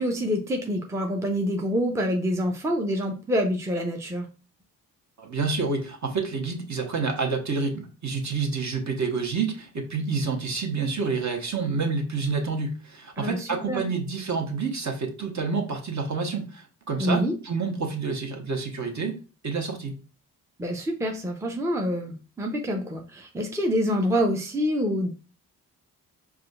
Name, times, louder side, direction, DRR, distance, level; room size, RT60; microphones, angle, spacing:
voice 1, 0.0-4.3 13.2-13.8 17.0-17.3 20.6-25.1, equal, 5° right, 2 dB, 0.6 m, -26 dB
voice 2, 5.2-19.9, right 4 dB, 40° right, 3 dB, 1.0 m, -28 dB
4.8 x 2.3 x 2.4 m, 0.34 s
hypercardioid pair, 45°, 43 cm